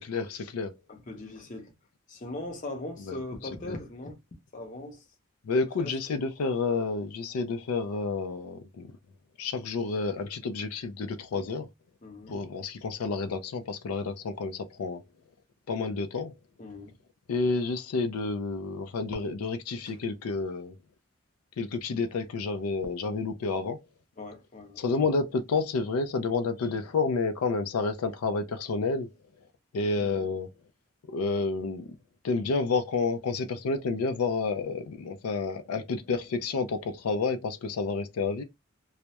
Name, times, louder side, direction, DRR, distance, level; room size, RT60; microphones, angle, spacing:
voice 1, 0.0-0.8 3.1-3.2 3.6-3.8 5.4-8.9 9.4-11.7 12.3-15.0 15.7-16.4 17.3-20.7 21.6-23.8 24.8-29.1 29.7-30.5 31.1-31.9 32.2-38.4, left 4 dB, 90° left, 0.4 m, -30 dB
voice 2, 0.9-1.7 2.1-4.2 4.5-5.0 5.8-5.9 12.0-12.4 16.6-17.0 19.9-20.0 24.2-24.8 29.9-30.3, left 2 dB, 35° left, 0.6 m, -40 dB
2.2 x 2.0 x 2.8 m
head